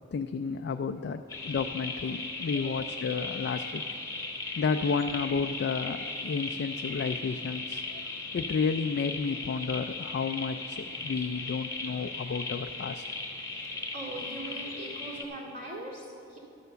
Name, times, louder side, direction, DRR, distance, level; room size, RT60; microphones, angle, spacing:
voice 1, 0.1-3.8 4.6-8.1 8.3-13.0, left 5 dB, 55° left, 7 dB, 0.3 m, -31 dB
sound 1, 1.3-15.2, left 3 dB, 15° left, 1.1 m, -37 dB
voice 2, 13.9-16.4, right 1 dB, 50° right, -6 dB, 2.2 m, -40 dB
11.5 x 6.8 x 6.8 m, 2.7 s
head